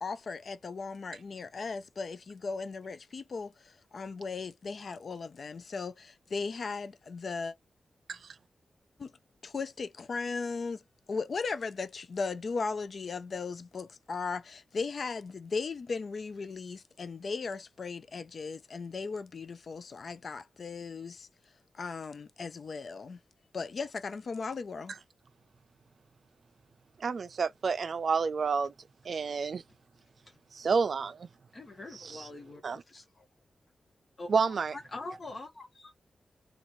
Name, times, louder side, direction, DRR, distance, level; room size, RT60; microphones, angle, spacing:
voice 1, 0.0-7.5 9.0-9.1 9.4-10.8 11.1-21.3 21.7-23.2 23.5-24.9, left 4 dB, 60° left, 0.4 m, -37 dB
voice 2, 27.0-28.7 29.0-29.6 30.5-31.3 31.9-32.3 32.6-32.8 34.3-34.7, right 5 dB, 65° right, 0.4 m, -29 dB
voice 3, 31.5-33.2 34.2-34.3 34.7-35.9, left 2 dB, 45° left, 1.1 m, -44 dB
3.0 x 2.4 x 2.5 m
cardioid pair, 70°, 0 cm